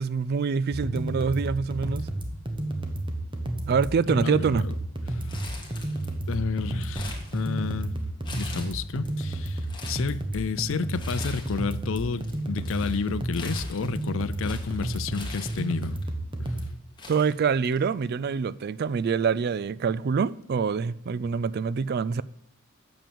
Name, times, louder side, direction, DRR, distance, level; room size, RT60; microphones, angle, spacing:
voice 1, 0.0-2.1 3.7-4.6 17.1-22.2, right 5 dB, 50° right, 0.3 m, -25 dB
sound 1, 0.7-16.7, right 1 dB, 25° right, 1.2 m, -31 dB
voice 2, 4.1-4.7 5.0-5.4 6.3-7.9 8.4-16.0 16.4-16.6, left 5 dB, 65° left, 0.5 m, -31 dB
Crumpling crinkling, 5.3-6.3 6.6-7.8 8.2-9.1 9.5-10.1 10.9-11.7 12.0-16.0 16.6-16.7 17.0-18.0 18.3-18.4 19.4-19.6, left 3 dB, 20° left, 1.9 m, -42 dB
9.0 x 7.2 x 7.0 m
head